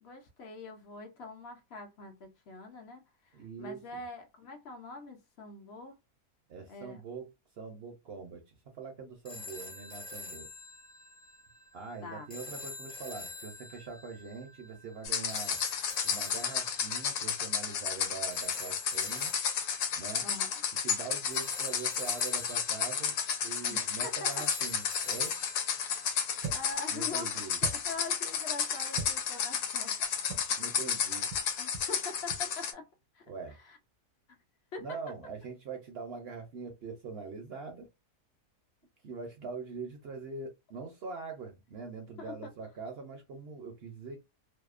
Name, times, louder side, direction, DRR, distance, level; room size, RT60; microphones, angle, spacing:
voice 1, 0.0-5.9 6.7-7.0 12.0-12.3 20.2-20.6 23.7-24.5 26.5-30.0 31.6-32.9 33.1-33.8 34.7-35.0 42.2-42.5, left 3 dB, 60° left, 0.7 m, -44 dB
voice 2, 3.3-3.8 6.5-7.3 7.6-8.4 8.7-10.5 11.7-15.6 16.0-19.3 19.9-20.2 20.8-25.3 26.9-27.6 30.6-31.3 33.3-33.6 34.8-37.9 39.0-44.2, right 4 dB, 65° right, 0.6 m, -43 dB
sound 1, 9.2-26.1, left 2 dB, 10° left, 0.3 m, -46 dB
sound 2, 15.0-32.7, left 7 dB, 85° left, 1.1 m, -32 dB
sound 3, 26.4-26.8 27.6-28.0 28.9-29.2 30.3-30.5 31.3-31.5 31.7-31.9 32.3-32.4, right 5 dB, 80° right, 1.1 m, -39 dB
2.7 x 2.0 x 2.4 m
omnidirectional pair, 1.6 m